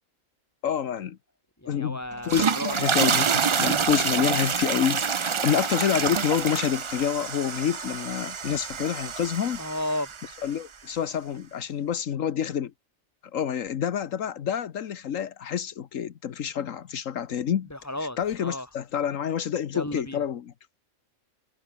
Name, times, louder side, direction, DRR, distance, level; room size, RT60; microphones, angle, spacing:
voice 1, 0.6-1.2 1.7-2.0 2.2-9.6 10.4-12.7 13.3-17.7 18.2-20.5, left 9 dB, 80° left, 1.4 m, -28 dB
voice 2, 1.6-2.7 9.6-10.1 17.7-18.7 19.7-20.2, left 1 dB, 10° left, 3.3 m, -33 dB
sound 1, 2.1-10.5, right 6 dB, 50° right, 0.3 m, -27 dB
omnidirectional pair, 1.4 m